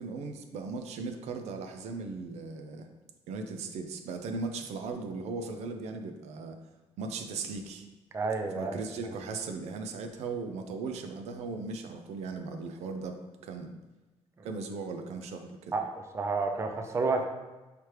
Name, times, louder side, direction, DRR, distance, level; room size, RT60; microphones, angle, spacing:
voice 1, 0.0-2.9 3.3-6.6 7.0-7.8 8.5-13.7 14.4-15.7, right 4 dB, 80° right, 6 dB, 0.4 m, -38 dB
voice 2, 8.1-8.8 15.7-17.3, right 3 dB, 25° right, 4 dB, 0.4 m, -30 dB
4.9 x 3.2 x 3.0 m, 1.1 s
cardioid pair, 115°, 11 cm